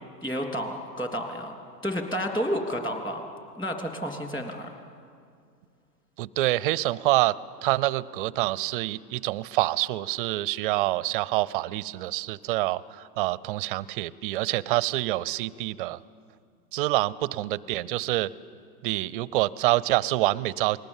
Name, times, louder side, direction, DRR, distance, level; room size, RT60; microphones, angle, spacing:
voice 1, 0.2-3.2 3.6-4.7, equal, 10° left, 3 dB, 3.1 m, -31 dB
voice 2, 6.2-7.4 7.6-16.0 16.7-18.3 18.8-20.8, right 17 dB, 35° right, 20 dB, 0.5 m, -26 dB
28.0 x 20.5 x 7.3 m, 2.2 s
hypercardioid pair, 125°, 48 cm